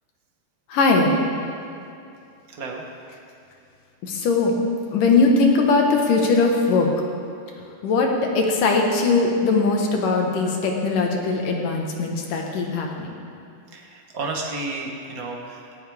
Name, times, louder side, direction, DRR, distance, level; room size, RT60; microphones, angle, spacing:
voice 1, 0.7-1.1 4.0-4.6 4.9-6.9 7.8-13.2, left 3 dB, 80° left, 1 dB, 3.1 m, -20 dB
voice 2, 2.5-2.9 13.7-15.8, right 3 dB, 80° right, 0 dB, 0.7 m, -32 dB
17.5 x 15.5 x 3.6 m, 2.5 s
omnidirectional pair, 3.7 m